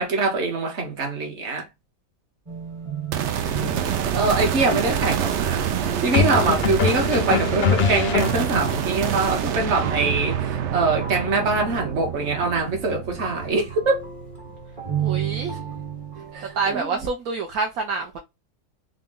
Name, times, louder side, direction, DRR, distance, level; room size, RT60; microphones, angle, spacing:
voice 1, 0.0-1.6 4.1-5.6 6.0-14.0 16.3-16.9, right 3 dB, 45° right, 1.3 m, -24 dB
sound 1, 2.5-16.8, right 6 dB, 25° right, 0.8 m, -33 dB
sound 2, 3.1-14.5, right 9 dB, 85° right, 0.6 m, -27 dB
voice 2, 3.2-3.7 15.0-15.6 16.5-18.2, right 4 dB, 70° right, 1.0 m, -27 dB
sound 3, 3.5-3.7 6.1-8.8, left 6 dB, 80° left, 0.5 m, -23 dB
3.8 x 2.2 x 3.7 m
omnidirectional pair, 1.8 m